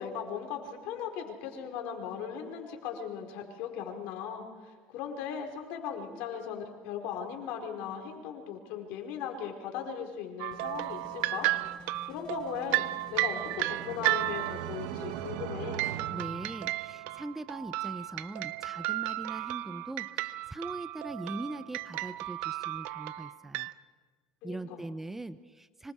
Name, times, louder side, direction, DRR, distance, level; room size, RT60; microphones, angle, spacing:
voice 1, 0.0-11.5 11.7-12.8 13.1-15.8 24.4-24.8, left 8 dB, 70° left, 3 dB, 4.7 m, -38 dB
sound 1, 10.4-14.8 15.7-23.7, right 16 dB, 70° right, 0.7 m, -34 dB
sound 2, 10.5-15.4, equal, 25° left, 4.2 m, -51 dB
sound 3, 12.6-17.1, right 10 dB, 85° right, 1.5 m, -40 dB
voice 2, 16.1-23.7 24.4-25.9, right 2 dB, 10° right, 14 dB, 0.7 m, -41 dB
25.5 x 25.0 x 4.9 m, 1.5 s
supercardioid pair, 115°, 3 cm